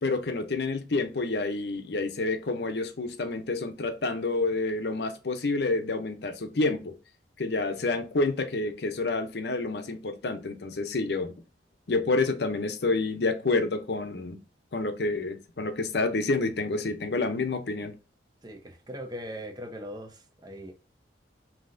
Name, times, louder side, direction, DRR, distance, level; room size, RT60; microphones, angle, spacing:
voice 1, 0.0-6.9 7.4-11.3 11.9-14.4 14.7-17.9, left 3 dB, 65° left, 0.7 m, -28 dB
voice 2, 18.4-20.7, equal, 25° right, 0.7 m, -40 dB
5.5 x 2.8 x 2.6 m
head